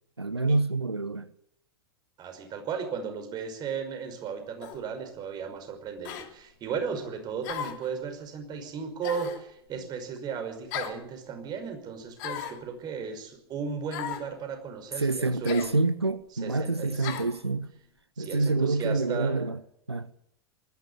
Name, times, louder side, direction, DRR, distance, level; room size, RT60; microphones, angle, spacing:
voice 1, 0.2-1.3 15.0-17.7 18.2-19.6 19.9-20.1, right 3 dB, 85° right, 0.8 m, -27 dB
voice 2, 2.2-15.7 16.4-17.3 18.2-19.4, right 6 dB, 30° right, 5.5 m, -35 dB
sound 1, 4.6-4.8 6.0-6.3 7.4-7.9 9.0-9.4 10.7-11.0 12.2-12.6 13.9-14.3 15.4-15.7 17.0-17.3, left 9 dB, 50° left, 3.2 m, -36 dB
19.5 x 15.0 x 9.8 m
figure-of-eight pair, 90°, 13 cm